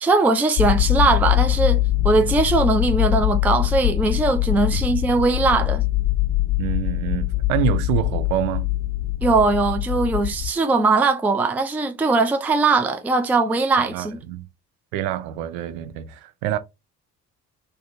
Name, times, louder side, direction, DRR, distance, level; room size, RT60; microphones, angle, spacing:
voice 1, 0.0-5.8 9.2-14.2, right 3 dB, 5° right, 0.3 m, -20 dB
sound 1, 0.6-10.5, left 17 dB, 55° left, 0.6 m, -22 dB
voice 2, 6.6-8.7 13.9-14.5 14.9-16.6, right 12 dB, 65° right, 0.6 m, -26 dB
3.7 x 2.1 x 2.6 m
figure-of-eight pair, 45°, 44 cm